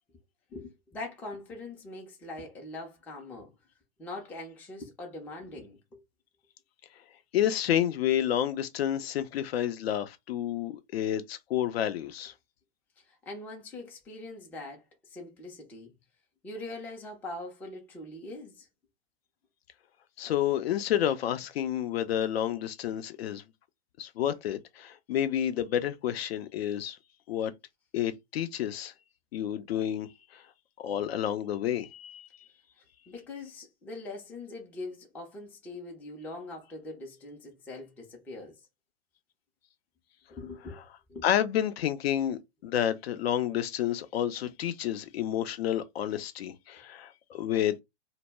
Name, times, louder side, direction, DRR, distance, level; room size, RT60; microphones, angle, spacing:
voice 1, 0.5-3.5 4.0-6.0 13.0-15.9 16.4-18.7 33.1-38.6 40.3-40.8 41.1-41.3, left 2 dB, 5° left, 0.4 m, -42 dB
voice 2, 7.3-12.3 20.2-23.4 24.0-27.0 27.3-27.5 27.9-28.9 29.3-30.1 30.3-30.4 30.8-32.3 41.2-47.8, left 11 dB, 60° left, 0.5 m, -30 dB
2.0 x 2.0 x 3.3 m
hypercardioid pair, 120°, 34 cm